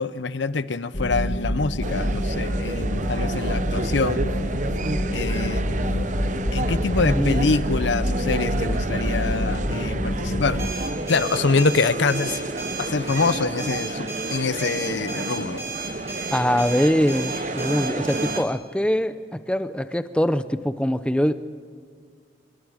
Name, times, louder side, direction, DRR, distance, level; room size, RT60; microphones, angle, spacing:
voice 1, 0.0-4.2 5.1-5.6 6.5-10.6 11.1-12.4 12.8-15.6, left 4 dB, 75° left, 15 dB, 0.7 m, -25 dB
sound 1, 0.9-10.7, equal, 50° left, 2.4 m, -26 dB
sound 2, 1.8-18.4, right 2 dB, 40° right, 0.8 m, -31 dB
voice 2, 7.0-7.5 16.3-21.3, equal, 5° left, 12 dB, 0.6 m, -23 dB
sound 3, 10.6-18.4, right 4 dB, 15° right, 4.3 m, -35 dB
25.5 x 21.5 x 5.0 m, 2.1 s
head